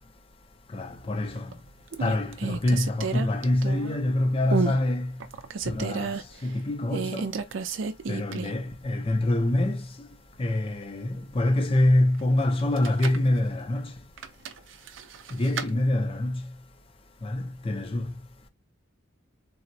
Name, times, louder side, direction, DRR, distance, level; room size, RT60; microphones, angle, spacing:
voice 1, 0.7-1.5 2.0-5.1 5.7-6.2 6.4-7.3 8.1-9.9 10.4-13.9 15.3-16.4 17.2-18.1, left 1 dB, 25° left, 0.4 m, -25 dB
sound 1, 1.1-1.5 1.9-4.1 4.5-4.8 5.2-6.2 6.9-8.7 9.0-9.1 12.6-13.3 14.2-15.7, right 5 dB, 60° right, 0.4 m, -31 dB
3.5 x 2.0 x 2.6 m
head